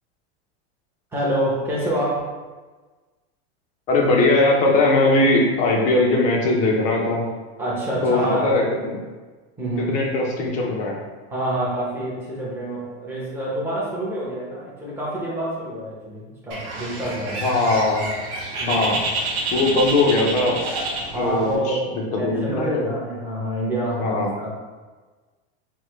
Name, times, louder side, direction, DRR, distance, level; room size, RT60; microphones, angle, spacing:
voice 1, 1.1-2.3 7.6-8.5 9.6-9.9 11.3-17.4 18.6-18.8 21.1-21.9 22.2-24.5, right 1 dB, 5° right, -7 dB, 0.8 m, -27 dB
voice 2, 3.9-7.3 8.0-9.0 9.9-11.0 17.4-18.1 18.7-19.0 19.5-20.7 21.1-21.8 22.2-22.9 24.0-24.3, left 2 dB, 20° left, -1 dB, 0.5 m, -20 dB
Bird, 16.5-21.6, right 2 dB, 40° right, 0.8 m, -28 dB
6.3 x 2.1 x 3.1 m, 1.3 s
supercardioid pair, 170°, 34 cm